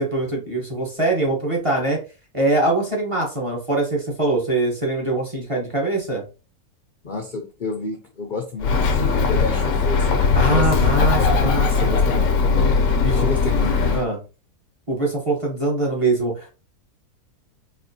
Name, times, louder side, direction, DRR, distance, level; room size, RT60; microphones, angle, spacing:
voice 1, 0.0-2.0 2.3-6.2 10.2-12.0 13.0-13.3 13.9-14.2 14.9-16.5, right 2 dB, 25° right, -1 dB, 0.9 m, -23 dB
voice 2, 7.0-10.1 10.4-10.9 11.2-12.7 13.1-14.0, left 3 dB, 50° left, 2 dB, 0.6 m, -29 dB
Bird, 8.6-14.0, left 4 dB, 65° left, 0.9 m, -19 dB
4.3 x 2.8 x 2.7 m, 0.33 s
omnidirectional pair, 1.6 m